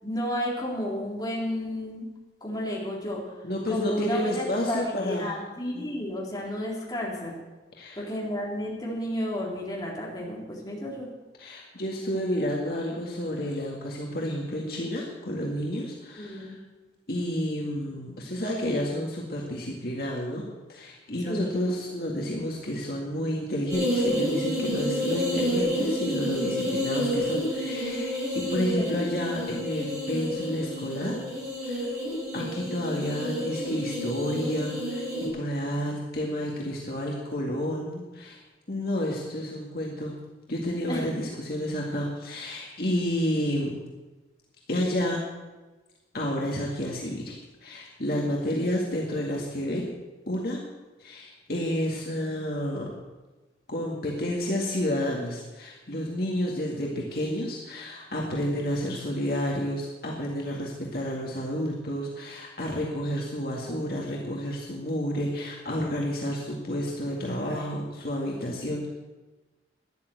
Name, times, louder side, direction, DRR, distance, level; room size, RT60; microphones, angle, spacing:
voice 1, 0.0-2.1 2.4-3.2 3.7-7.3 8.0-11.1 16.2-16.6 21.2-21.5 28.8-28.9 40.9-41.1 63.7-63.8 64.1-64.2, left 1 dB, 20° left, -4 dB, 3.9 m, -32 dB
voice 2, 3.4-5.3 5.7-5.9 7.8-8.0 11.4-16.6 17.1-31.2 31.6-31.9 32.3-38.4 38.7-40.1 40.5-43.8 44.7-45.2 46.1-49.9 50.3-50.6 51.0-52.9 53.7-68.9, equal, 55° left, -2 dB, 2.1 m, -30 dB
sound 1, 23.7-35.3, equal, 20° right, 6.1 m, -29 dB
13.0 x 11.0 x 7.9 m, 1.2 s
head